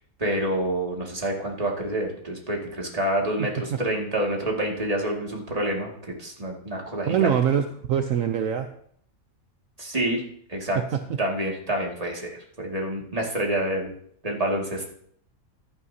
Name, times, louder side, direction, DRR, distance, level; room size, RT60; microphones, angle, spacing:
voice 1, 0.2-7.4 9.8-10.2 10.5-10.8 11.2-13.9 14.2-14.8, right 1 dB, 25° right, -1 dB, 2.2 m, -27 dB
voice 2, 7.1-8.7, right 9 dB, 70° right, 6 dB, 1.1 m, -23 dB
15.0 x 11.0 x 2.8 m, 0.64 s
omnidirectional pair, 1.5 m